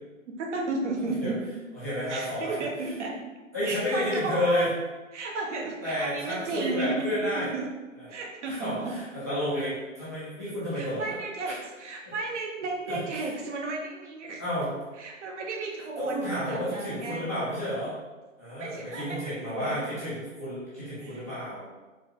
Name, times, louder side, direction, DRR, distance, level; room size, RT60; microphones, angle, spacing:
voice 1, 0.3-1.4 2.1-3.1 3.6-4.7 5.1-7.0 7.4-7.7 8.1-8.9 10.7-14.4 15.0-17.3 18.5-19.8 21.0-21.2, right 3 dB, 60° right, 1 dB, 0.9 m, -33 dB
voice 2, 1.7-2.5 3.5-4.7 5.8-7.5 7.9-8.1 8.5-11.1 11.4-11.6 12.9-13.0 14.4-14.7 16.0-17.9 18.4-21.6, equal, 15° left, -12 dB, 0.3 m, -31 dB
4.2 x 2.4 x 3.5 m, 1.2 s
hypercardioid pair, 145°, 40 cm